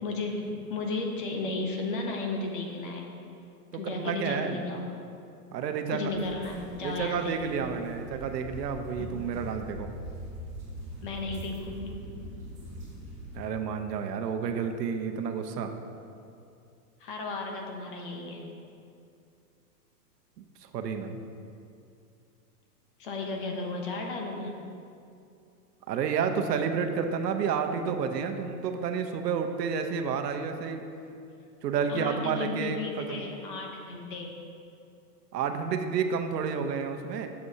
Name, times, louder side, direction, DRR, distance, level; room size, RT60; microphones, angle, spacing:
voice 1, 0.0-3.1 3.7-4.9 5.9-7.4 9.0-9.1 11.0-12.1 17.0-18.4 23.0-24.6 31.9-34.4, left 3 dB, 35° left, 1 dB, 0.7 m, -34 dB
voice 2, 3.7-4.6 5.5-6.1 6.8-9.9 13.3-15.7 20.4-21.2 25.9-30.8 31.6-33.2 35.3-37.3, right 6 dB, 80° right, 6 dB, 0.9 m, -30 dB
sound 1, 6.1-13.4, equal, 15° right, 1.5 m, -42 dB
9.5 x 7.0 x 2.7 m, 2.5 s
supercardioid pair, 170°, 48 cm